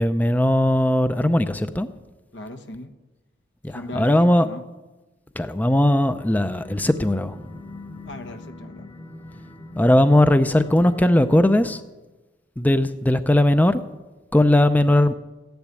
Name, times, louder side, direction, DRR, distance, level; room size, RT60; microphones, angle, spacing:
voice 1, 0.0-1.9 3.6-4.5 5.4-7.5 9.8-11.8 12.6-13.8 14.3-15.1, left 1 dB, 10° left, 11 dB, 0.5 m, -18 dB
voice 2, 2.3-2.9 3.7-4.6 8.0-8.9, left 1 dB, 75° left, 6 dB, 1.3 m, -37 dB
sound 1, 6.1-11.8, left 2 dB, 30° left, 1.0 m, -41 dB
15.5 x 10.5 x 8.2 m, 1.1 s
head